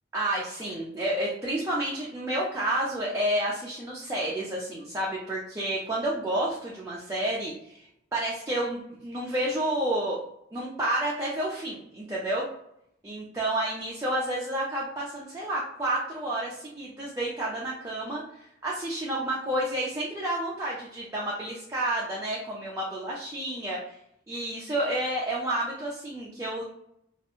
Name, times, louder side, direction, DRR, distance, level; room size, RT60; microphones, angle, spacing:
voice 1, 0.1-10.2 10.5-12.5 13.0-24.0 24.3-26.6, right 1 dB, 15° right, -5 dB, 0.4 m, -30 dB
2.4 x 2.1 x 2.9 m, 0.74 s
head